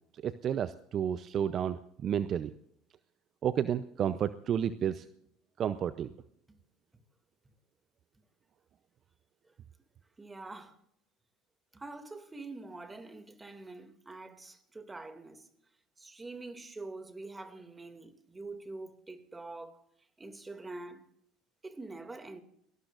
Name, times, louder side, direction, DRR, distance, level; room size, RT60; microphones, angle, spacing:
voice 1, 0.2-2.5 3.4-5.1 5.6-6.1, right 9 dB, 45° right, 0.6 m, -31 dB
voice 2, 10.2-10.8 11.7-15.5 16.0-19.8 20.2-21.0 21.6-22.4, right 3 dB, 15° right, 2.4 m, -45 dB
28.0 x 19.5 x 2.6 m
hypercardioid pair, 75°, 0 cm